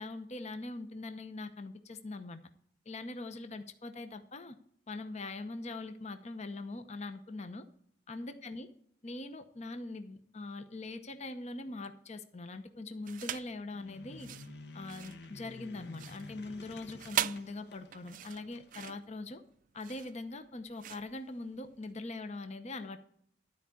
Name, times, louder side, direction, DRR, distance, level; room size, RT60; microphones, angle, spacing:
voice 1, 0.0-2.4 2.9-4.6 4.9-7.6 8.1-8.7 9.0-14.3 14.7-19.4 19.7-23.0, left 2 dB, 40° left, 9 dB, 0.8 m, -42 dB
sound 1, 13.0-13.6 14.1-21.9, right 11 dB, 45° right, 0.3 m, -40 dB
sound 2, 13.7-18.7, left 2 dB, 65° left, 1.1 m, -51 dB
12.5 x 4.7 x 8.3 m, 0.65 s
head